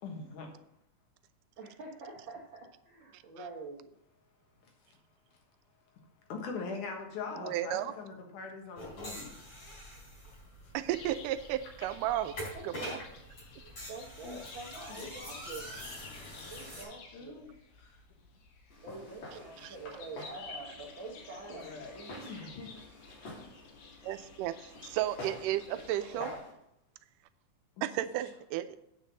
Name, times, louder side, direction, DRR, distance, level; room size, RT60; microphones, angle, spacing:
voice 1, 0.0-0.5 6.3-9.4 14.2-14.4 14.9-15.1 17.1-17.5 17.8-18.0 21.5-22.0 22.3-22.7 26.1-26.3 27.8-27.9, left 4 dB, 70° left, 2 dB, 2.8 m, -42 dB
voice 2, 1.6-3.9 12.0-12.2 12.5-13.0 13.6-15.7 16.5-17.4 18.8-22.4, right 3 dB, 65° right, -2 dB, 1.2 m, -46 dB
voice 3, 7.4-7.9 10.7-12.3 12.6-13.0 19.6-19.8 24.0-26.4 27.8-28.8, right 13 dB, 85° right, 13 dB, 2.1 m, -33 dB
sound 1, 8.8-16.8, equal, 35° left, 4.7 m, -45 dB
sound 2, 10.9-26.4, left 4 dB, 90° left, 3.1 m, -53 dB
Walk footsteps, 18.7-26.5, left 1 dB, 55° left, 3.7 m, -48 dB
8.3 x 5.5 x 7.2 m, 0.80 s
omnidirectional pair, 3.7 m